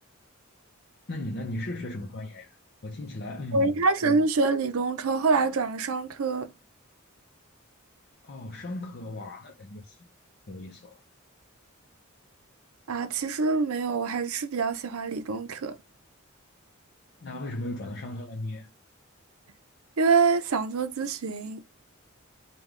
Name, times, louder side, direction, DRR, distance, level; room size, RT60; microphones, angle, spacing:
voice 1, 1.1-2.6 2.8-4.3 8.2-10.1 10.5-11.0 17.2-18.7, left 1 dB, 50° left, 0.6 m, -36 dB
voice 2, 3.5-6.5 12.9-15.8 20.0-21.6, right 4 dB, 90° right, 0.5 m, -25 dB
3.7 x 2.2 x 3.1 m
head